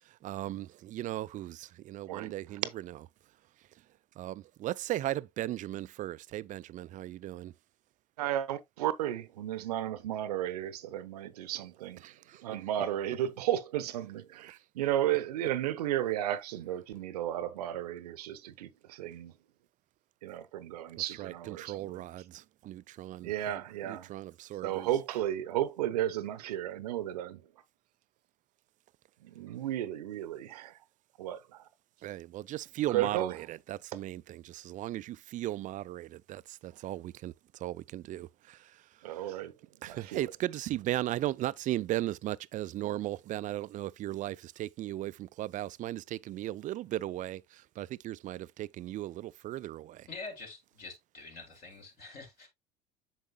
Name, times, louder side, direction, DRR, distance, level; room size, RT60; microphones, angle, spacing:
voice 1, 0.2-3.0 4.2-7.5 12.0-12.4 21.1-24.9 32.0-37.3 37.6-38.6 39.8-47.4 47.8-50.1, right 14 dB, 40° right, 0.4 m, -37 dB
voice 2, 8.2-12.0 12.4-19.3 20.2-22.0 23.2-24.1 24.6-27.4 29.2-30.8 31.2-31.6 32.9-33.3 39.0-39.5 39.9-40.2, right 12 dB, 75° right, 0.8 m, -33 dB
voice 3, 50.1-52.5, left 3 dB, 50° left, 3.9 m, -45 dB
8.2 x 6.3 x 2.2 m
hypercardioid pair, 70°, 20 cm